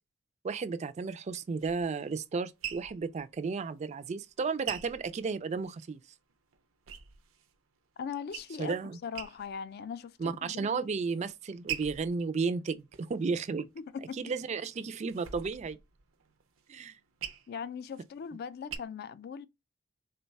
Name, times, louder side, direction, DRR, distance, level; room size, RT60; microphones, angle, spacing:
voice 1, 0.4-6.0 8.6-9.0 10.2-13.7 14.2-15.8 16.7-17.0, right 4 dB, 35° right, 0.3 m, -33 dB
sneaker skid, 1.2-5.9 6.3-7.6 7.9-8.8 9.1-9.8 10.2-10.7 11.3-14.0 14.4-18.8, right 9 dB, 90° right, 0.5 m, -44 dB
voice 2, 8.0-8.8 9.0-10.9 13.8-14.3 17.5-19.5, left 6 dB, 50° left, 0.3 m, -40 dB
3.8 x 2.2 x 4.0 m
head